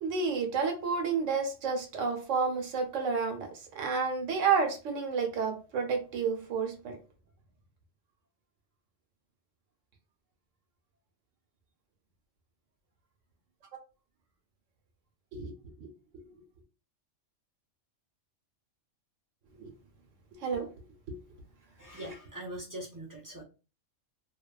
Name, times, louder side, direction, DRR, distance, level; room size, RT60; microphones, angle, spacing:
voice 1, 0.0-3.5 3.7-7.0 15.3-15.5 15.8-15.9 19.6-19.7 20.4-20.7 21.1-21.2 22.0-22.1, right 5 dB, 75° right, 4 dB, 1.0 m, -30 dB
voice 2, 21.8-23.4, right 1 dB, 30° right, -3 dB, 0.3 m, -42 dB
2.8 x 2.1 x 2.3 m, 0.33 s
omnidirectional pair, 1.3 m